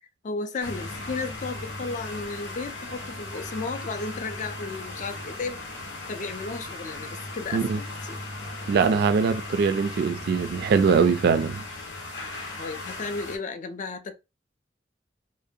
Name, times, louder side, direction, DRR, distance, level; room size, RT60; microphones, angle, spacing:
voice 1, 0.2-5.6 6.1-8.2 12.6-14.1, left 3 dB, 45° left, 0.4 m, -34 dB
sound 1, 0.6-13.4, left 2 dB, 90° left, 0.7 m, -37 dB
voice 2, 8.7-11.6, right 5 dB, 60° right, 0.3 m, -22 dB
2.5 x 2.1 x 2.6 m
head